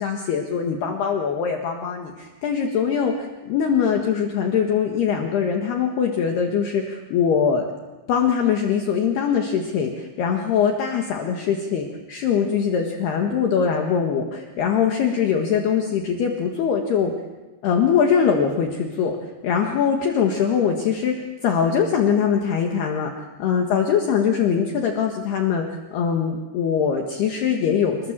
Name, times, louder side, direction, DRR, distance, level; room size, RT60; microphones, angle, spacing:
voice 1, 0.0-7.7 8.1-17.1 17.6-25.6 25.9-28.1, left 7 dB, 60° left, 2 dB, 3.2 m, -22 dB
30.0 x 19.5 x 7.5 m, 1.2 s
omnidirectional pair, 6.0 m